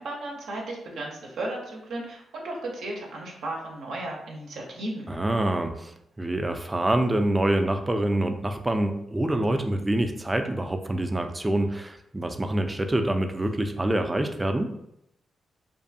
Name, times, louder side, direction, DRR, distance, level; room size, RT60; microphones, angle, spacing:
voice 1, 0.0-5.1, right 2 dB, 75° right, -1 dB, 0.6 m, -35 dB
voice 2, 5.1-5.9 6.2-14.7, right 1 dB, 20° right, 6 dB, 0.3 m, -26 dB
2.5 x 2.3 x 2.6 m, 0.79 s
supercardioid pair, 45°, 0 cm